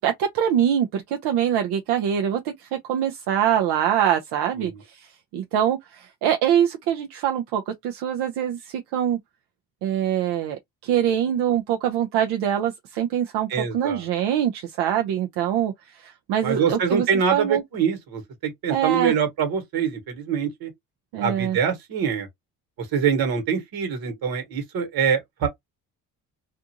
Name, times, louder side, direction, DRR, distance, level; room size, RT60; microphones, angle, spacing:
voice 1, 0.0-5.1 5.3-9.2 9.8-17.1 17.3-17.6 18.7-19.1 21.1-21.6, right 10 dB, 85° right, 0.6 m, -24 dB
voice 2, 13.5-14.1 16.4-20.7 21.2-22.3 22.8-25.5, right 7 dB, 65° right, 1.4 m, -24 dB
2.5 x 2.4 x 2.7 m
cardioid pair, 110°, 39 cm